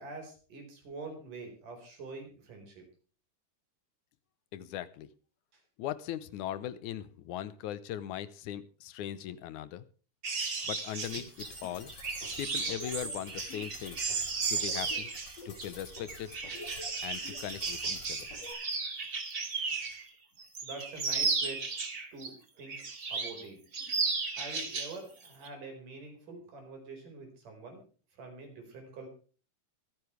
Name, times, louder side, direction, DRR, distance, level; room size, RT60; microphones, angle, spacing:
voice 1, 0.0-2.9 5.5-5.6 20.6-21.7 22.1-22.8 23.1-23.6 24.3-27.8 28.2-29.1, right 3 dB, 75° right, 3 dB, 6.2 m, -45 dB
voice 2, 4.5-5.1 5.8-9.9 10.7-11.9 12.4-14.1 14.5-15.1 15.5-16.3 17.0-18.3, left 11 dB, 75° left, 15 dB, 2.2 m, -39 dB
sound 1, 10.2-20.0 20.4-22.3 22.7-23.4 23.7-25.0 25.2-25.5, right 4 dB, 30° right, 2.3 m, -35 dB
sound 2, 11.0-18.5, left 3 dB, 50° left, 5.1 m, -48 dB
24.5 x 9.7 x 3.3 m, 0.39 s
omnidirectional pair, 3.7 m